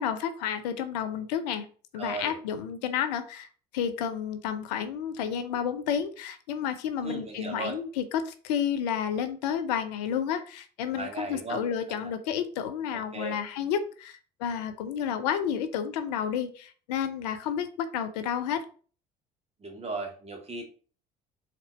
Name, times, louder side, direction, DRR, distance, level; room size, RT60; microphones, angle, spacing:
voice 1, 0.0-1.7 1.9-3.5 3.7-18.6, left 8 dB, 75° left, 10 dB, 0.7 m, -31 dB
voice 2, 1.9-2.4 7.0-7.8 10.9-11.6 12.9-13.4 19.6-20.7, right 3 dB, 30° right, 2 dB, 2.1 m, -36 dB
4.4 x 4.0 x 5.3 m, 0.41 s
hypercardioid pair, 60°, 21 cm